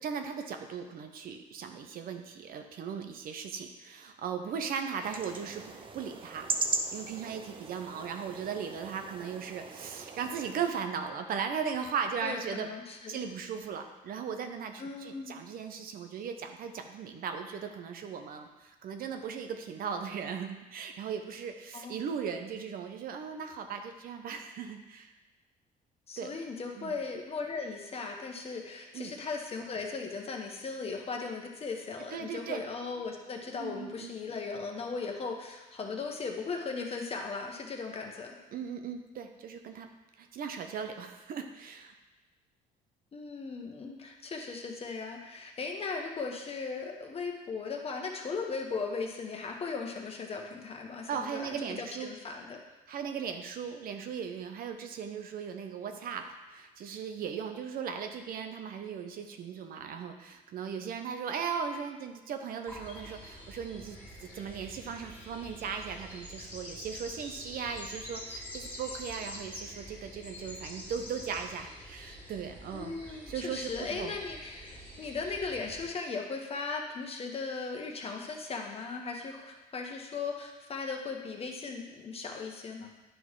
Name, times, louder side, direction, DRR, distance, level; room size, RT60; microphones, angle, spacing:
voice 1, 0.0-6.5 6.9-12.7 13.1-25.1 26.2-26.3 26.8-26.9 28.9-29.1 32.1-32.6 33.6-34.1 38.5-39.9 40.2-41.9 51.1-52.1 52.9-56.2 56.5-74.2, right 6 dB, 60° right, 6 dB, 0.8 m, -38 dB
sound 1, 5.0-10.7, right 4 dB, 30° right, 0.6 m, -38 dB
voice 2, 12.2-13.3 14.8-15.4 21.7-22.1 26.1-38.4 43.1-52.6 72.7-82.9, left 4 dB, 35° left, 2 dB, 1.2 m, -37 dB
sound 2, 62.7-75.9, equal, 10° left, 2.2 m, -46 dB
10.5 x 3.9 x 4.8 m, 1.1 s
cardioid pair, 110°, 17 cm